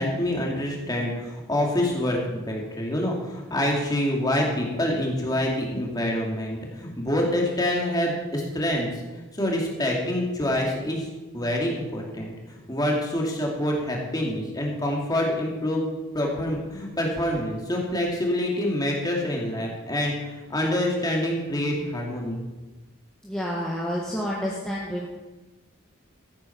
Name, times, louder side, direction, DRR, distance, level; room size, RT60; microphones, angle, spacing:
voice 1, 0.0-8.9 9.3-11.1 11.3-12.3 12.7-15.8 16.1-20.2 20.5-22.4, left 1 dB, 20° left, -1 dB, 2.5 m, -26 dB
voice 2, 23.2-25.1, equal, 5° left, -5 dB, 1.5 m, -29 dB
14.5 x 9.0 x 6.0 m, 1.2 s
head